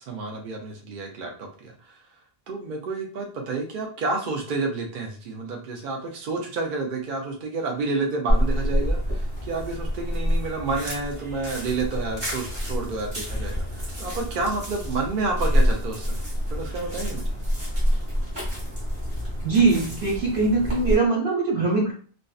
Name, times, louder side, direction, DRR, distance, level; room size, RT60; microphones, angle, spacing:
voice 1, 0.1-2.0 2.5-16.2 16.5-17.3, right 3 dB, 60° right, 1 dB, 0.6 m, -30 dB
sound 1, 8.3-20.9, equal, 25° right, 0.9 m, -27 dB
voice 2, 19.4-21.9, right 3 dB, 80° right, -3 dB, 1.4 m, -21 dB
2.5 x 2.1 x 2.3 m, 0.42 s
omnidirectional pair, 1.1 m